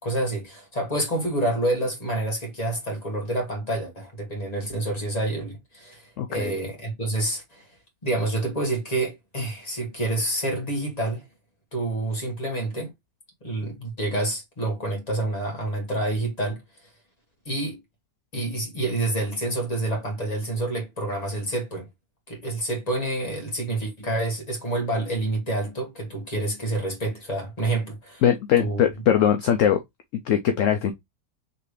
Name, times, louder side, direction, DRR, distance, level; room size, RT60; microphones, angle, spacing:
voice 1, 0.0-7.7 8.0-11.2 11.7-12.9 13.4-16.6 17.4-17.8 18.3-21.9 22.3-28.2 28.6-28.8, right 2 dB, 25° left, 1.6 m, -28 dB
voice 2, 6.2-6.6 28.2-29.8 30.3-30.9, left 9 dB, 65° left, 0.8 m, -21 dB
4.1 x 3.3 x 3.1 m
omnidirectional pair, 1.7 m